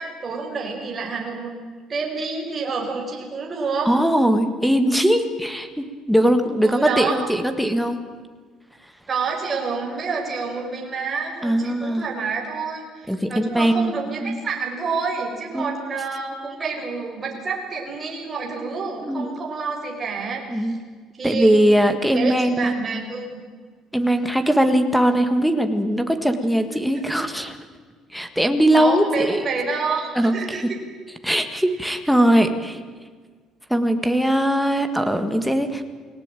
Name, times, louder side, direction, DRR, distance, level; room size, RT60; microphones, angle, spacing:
voice 1, 0.0-1.5 1.9-3.9 6.6-7.1 9.1-20.8 21.1-21.6 22.1-23.3 28.7-30.6, right 4 dB, 20° right, 0 dB, 5.2 m, -28 dB
voice 2, 3.8-8.0 11.4-12.1 13.1-14.4 15.5-15.7 19.0-19.4 20.5-20.7 21.2-22.7 23.9-27.6 28.1-29.4 30.1-30.7 31.2-32.8 33.7-35.9, right 1 dB, ahead, 6 dB, 1.7 m, -20 dB
29.5 x 18.0 x 9.1 m, 1.5 s
cardioid pair, 175°, 0 cm